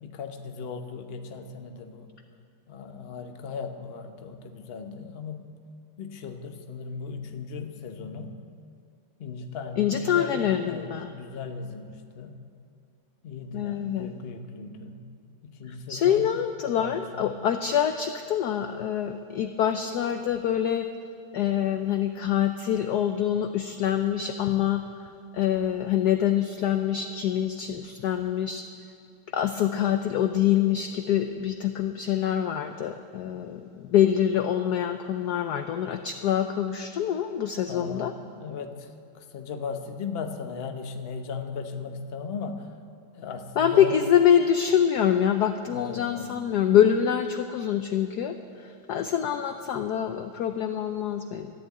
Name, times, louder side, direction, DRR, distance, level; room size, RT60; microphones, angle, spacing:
voice 1, 0.0-2.1 2.7-5.5 6.0-8.3 9.2-12.4 13.2-15.0 15.4-16.2 16.6-17.5 37.6-42.7 43.1-44.0 45.7-46.3, left 5 dB, 45° left, 6 dB, 0.8 m, -37 dB
voice 2, 9.8-11.1 13.5-14.1 15.9-20.9 21.3-25.1 25.3-28.7 29.3-38.1 43.6-51.5, left 9 dB, 75° left, 8 dB, 0.9 m, -25 dB
14.0 x 11.5 x 8.4 m, 2.5 s
omnidirectional pair, 2.3 m